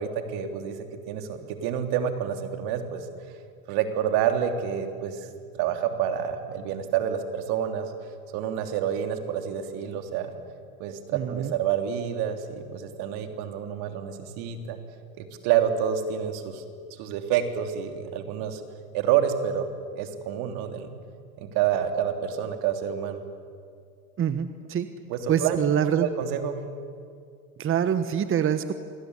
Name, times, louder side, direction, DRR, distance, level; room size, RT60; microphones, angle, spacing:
voice 1, 0.0-3.3 3.7-5.3 5.5-7.9 8.3-10.3 10.8-14.8 15.2-16.6 17.0-18.6 18.9-19.7 20.0-20.9 21.4-23.2 25.1-25.6 26.0-26.6, right 9 dB, 55° right, 6 dB, 3.6 m, -28 dB
voice 2, 11.1-11.5 24.2-24.9 25.3-26.1 27.6-28.7, right 9 dB, 30° right, 11 dB, 1.4 m, -25 dB
27.0 x 21.0 x 9.9 m, 2.2 s
hypercardioid pair, 100°, 43 cm